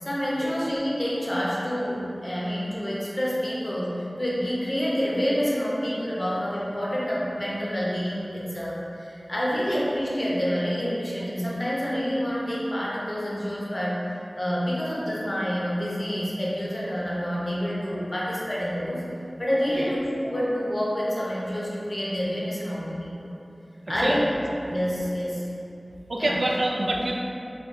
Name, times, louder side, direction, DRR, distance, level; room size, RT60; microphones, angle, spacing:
voice 1, 0.0-14.0 14.4-19.1 19.4-23.3 23.9-24.2 24.6-25.5 26.2-26.4, equal, 40° left, -6 dB, 0.7 m, -28 dB
voice 2, 24.0-24.4 26.1-27.1, right 1 dB, 90° right, -1 dB, 0.3 m, -26 dB
3.8 x 2.3 x 2.6 m, 2.7 s
wide cardioid pair, 60°, 0 cm